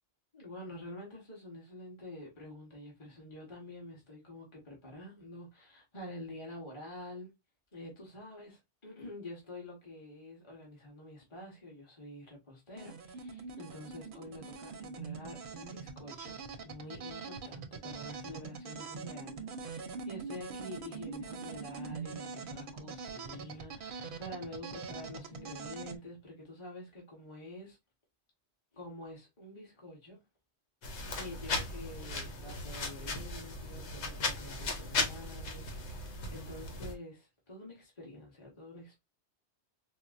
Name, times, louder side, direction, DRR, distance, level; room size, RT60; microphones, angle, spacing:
voice 1, 0.3-7.3 7.7-27.8 28.7-30.2 31.1-39.0, left 1 dB, 25° left, 1.1 m, -48 dB
sound 1, 12.7-26.0, right 4 dB, 60° right, 0.7 m, -43 dB
sound 2, 30.8-36.9, left 3 dB, 85° left, 1.1 m, -37 dB
4.2 x 2.0 x 2.4 m
omnidirectional pair, 1.1 m